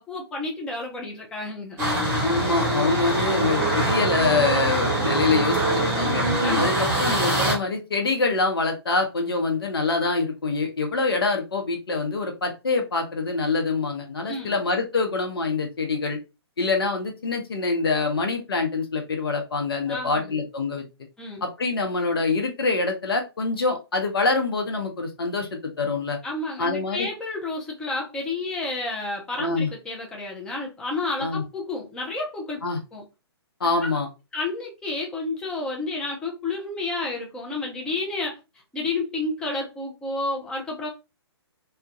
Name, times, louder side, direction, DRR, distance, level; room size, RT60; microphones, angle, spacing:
voice 1, 0.0-1.8 6.4-6.8 14.3-14.6 19.9-20.4 21.2-21.4 26.2-32.6 32.9-33.0 33.8-33.9 34.3-38.4 38.7-40.9, left 3 dB, 5° left, -1 dB, 0.4 m, -30 dB
sound 1, 1.8-7.5, right 1 dB, 15° right, 1.0 m, -23 dB
voice 2, 2.2-6.2 6.5-6.7 7.0-16.2 16.6-20.8 21.4-26.2 26.6-27.1 29.4-29.7 31.2-31.4 32.6-32.8 33.6-34.1, left 3 dB, 60° left, 3 dB, 0.7 m, -25 dB
2.2 x 2.2 x 2.5 m, 0.27 s
figure-of-eight pair, 125°, 14 cm